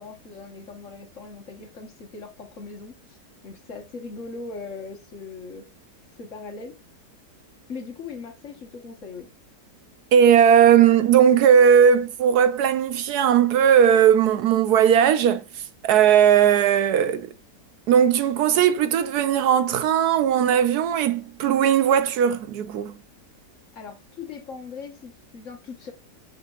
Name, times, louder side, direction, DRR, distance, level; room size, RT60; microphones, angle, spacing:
voice 1, 0.0-3.2 3.4-5.6 6.2-6.8 7.7-9.3 23.7-25.9, left 4 dB, 50° left, 1.6 m, -39 dB
voice 2, 10.1-17.3 17.9-22.9, right 8 dB, 70° right, 1.1 m, -18 dB
9.1 x 5.5 x 2.4 m
omnidirectional pair, 1.8 m